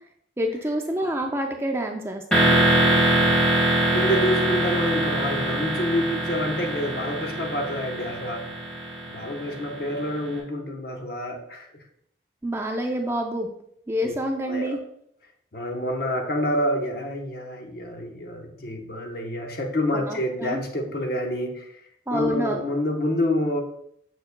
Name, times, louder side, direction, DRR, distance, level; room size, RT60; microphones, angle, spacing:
voice 1, 0.4-2.6 12.4-13.5 13.9-14.8 20.1-20.6 22.1-22.6, equal, 15° right, 3 dB, 0.5 m, -27 dB
sound 1, 2.3-10.1, right 1 dB, 5° left, 1.5 m, -23 dB
voice 2, 2.4-3.4 3.9-8.5 9.1-11.7 14.0-14.1 14.4-14.8 15.5-21.8 22.1-23.6, left 1 dB, 55° left, 2 dB, 1.0 m, -28 dB
6.8 x 6.4 x 2.2 m, 0.70 s
head